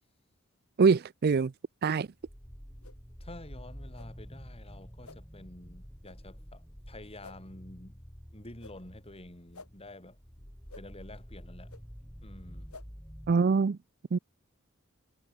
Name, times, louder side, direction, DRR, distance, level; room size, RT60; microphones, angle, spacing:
voice 1, 0.8-1.5 1.8-2.1 13.3-13.8 14.1-14.2, right 5 dB, 45° right, 0.4 m, -24 dB
sound 1, 2.2-13.3, equal, 5° left, 4.1 m, -49 dB
sound 2, 2.8-3.0 3.9-4.1 5.0-5.2 6.0-6.2 7.2-7.4 8.6-8.8 9.5-9.7 10.7-10.8 11.7-11.8 12.7-12.9, left 3 dB, 90° left, 4.0 m, -50 dB
voice 2, 3.2-8.0 8.3-10.5 10.7-11.7 12.2-12.7, left 1 dB, 25° left, 4.7 m, -49 dB
head